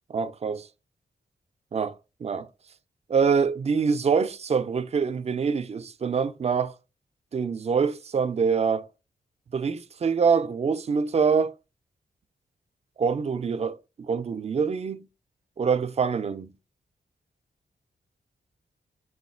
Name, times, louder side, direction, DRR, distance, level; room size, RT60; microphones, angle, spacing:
voice 1, 0.1-0.7 1.7-1.9 2.2-2.5 3.1-6.7 7.3-8.9 9.5-11.5 13.0-15.1 15.6-16.5, right 5 dB, 40° right, 0.4 m, -25 dB
3.9 x 2.3 x 4.2 m
wide cardioid pair, 105°, 17 cm